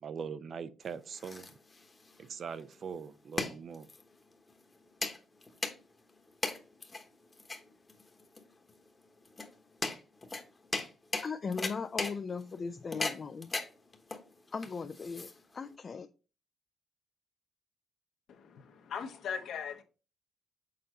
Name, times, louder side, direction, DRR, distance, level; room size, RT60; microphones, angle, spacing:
voice 1, 0.0-1.5 2.2-3.9, right 6 dB, 55° right, 0.5 m, -41 dB
sound 1, 0.8-15.7, left 3 dB, 25° left, 1.1 m, -39 dB
voice 2, 11.2-13.5 14.5-16.1, left 5 dB, 40° left, 0.4 m, -38 dB
voice 3, 18.3-19.8, left 7 dB, 70° left, 1.0 m, -39 dB
6.7 x 4.0 x 3.8 m
cardioid pair, 90°, 0 cm